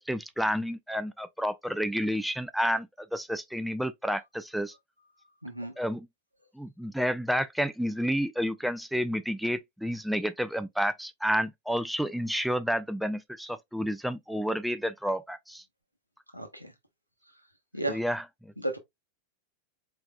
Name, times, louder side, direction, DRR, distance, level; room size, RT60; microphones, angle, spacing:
voice 1, 0.0-4.7 5.8-6.1 6.5-15.6 17.9-18.5, equal, ahead, 0.4 m, -30 dB
voice 2, 5.4-5.7 16.3-16.7 17.7-18.0 18.6-18.8, right 1 dB, 90° right, 0.9 m, -33 dB
4.6 x 3.5 x 2.2 m
figure-of-eight pair, 90°, 0 cm